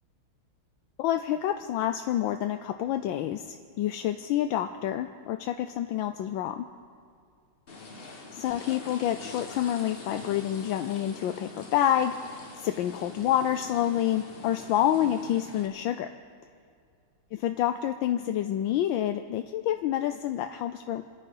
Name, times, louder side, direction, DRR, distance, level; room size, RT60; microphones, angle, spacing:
voice 1, 1.0-6.6 8.3-16.1 17.4-21.0, left 11 dB, 75° left, 7 dB, 1.3 m, -28 dB
sound 1, 7.7-15.7, left 3 dB, 30° left, 1.2 m, -44 dB
27.0 x 9.6 x 5.4 m, 2.2 s
omnidirectional pair, 2.4 m